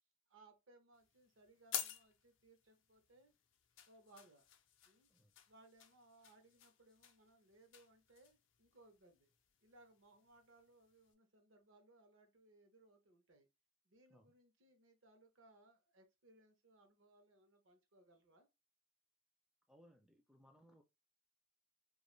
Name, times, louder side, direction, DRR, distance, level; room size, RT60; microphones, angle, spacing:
voice 1, 0.3-3.3 3.8-4.5 4.9-5.1 5.5-9.3 9.6-13.5 13.8-18.5, right 2 dB, 70° right, 0.8 m, -67 dB
sound 1, 0.9-11.1, left 10 dB, 65° left, 0.4 m, -52 dB
voice 2, 19.7-20.8, equal, ahead, 0.3 m, -66 dB
2.4 x 2.3 x 3.0 m
head